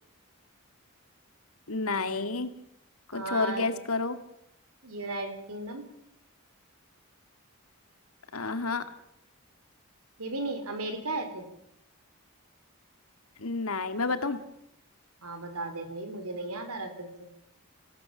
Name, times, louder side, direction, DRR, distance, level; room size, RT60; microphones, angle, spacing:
voice 1, 1.7-2.5 3.1-4.2 8.3-8.9 13.4-14.4, left 3 dB, 75° left, 10 dB, 2.0 m, -30 dB
voice 2, 3.1-3.6 4.8-5.8 10.2-11.5 15.2-17.3, right 2 dB, 90° right, 7 dB, 4.1 m, -35 dB
27.0 x 16.5 x 7.2 m, 0.81 s
head